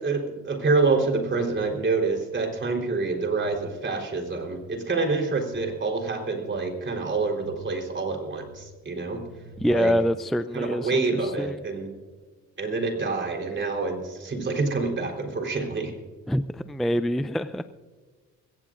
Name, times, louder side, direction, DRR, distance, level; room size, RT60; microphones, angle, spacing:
voice 1, 0.0-9.2 9.7-9.9 10.5-11.9 12.6-15.9, right 3 dB, 40° right, 2 dB, 3.9 m, -27 dB
sound 1, 1.7-10.0, equal, 70° right, 5.1 m, -50 dB
voice 2, 9.6-11.6 16.3-17.6, equal, ahead, 12 dB, 0.4 m, -25 dB
21.5 x 18.0 x 2.5 m, 1.4 s
cardioid pair, 90°, 30 cm